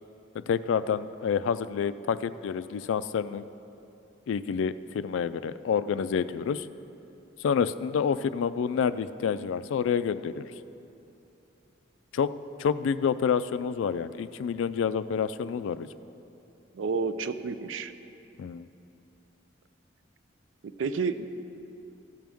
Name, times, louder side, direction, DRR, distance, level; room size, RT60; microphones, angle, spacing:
voice 1, 0.3-3.5 4.3-6.7 7.4-10.5 12.1-12.3 12.6-15.9 18.4-18.7, left 7 dB, 85° left, 14 dB, 0.3 m, -28 dB
voice 2, 16.7-17.9 20.6-21.3, right 5 dB, 80° right, 12 dB, 0.4 m, -30 dB
14.0 x 7.4 x 3.5 m, 2.8 s
head